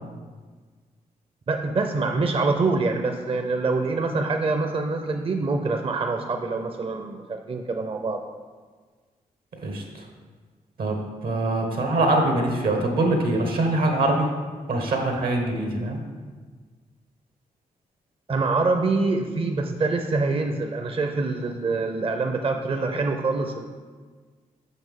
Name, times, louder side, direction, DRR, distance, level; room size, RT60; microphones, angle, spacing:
voice 1, 1.5-8.2 18.3-23.7, right 3 dB, 40° right, 4 dB, 0.5 m, -25 dB
voice 2, 10.8-14.3 14.7-16.0, right 2 dB, 80° right, 2 dB, 1.1 m, -23 dB
5.7 x 5.5 x 3.7 m, 1.5 s
cardioid pair, 50°, 15 cm